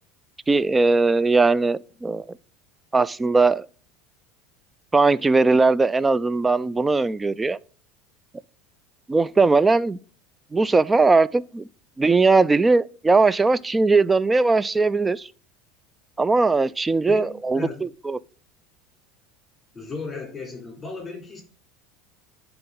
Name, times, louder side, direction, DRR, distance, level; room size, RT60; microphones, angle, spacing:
voice 1, 0.5-2.2 2.9-3.7 4.9-7.6 9.1-10.0 10.5-11.7 12.0-15.3 16.2-18.2, right 3 dB, 15° right, 0.4 m, -19 dB
voice 2, 17.1-17.9 19.7-21.4, left 4 dB, 20° left, 3.6 m, -35 dB
10.5 x 3.5 x 3.9 m
hypercardioid pair, 80°, 0 cm